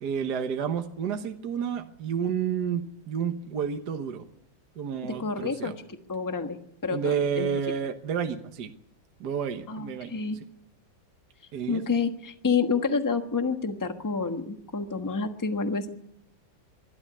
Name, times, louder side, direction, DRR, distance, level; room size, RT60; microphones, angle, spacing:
voice 1, 0.0-4.3 4.8-5.7 6.9-8.7 9.2-10.1 11.5-11.8, right 7 dB, 60° right, 6 dB, 1.6 m, -30 dB
voice 2, 5.0-5.7 6.1-6.6 6.8-7.5 9.7-10.4 11.7-15.9, left 4 dB, 10° left, 7 dB, 1.1 m, -28 dB
23.0 x 12.5 x 9.7 m, 0.76 s
omnidirectional pair, 2.2 m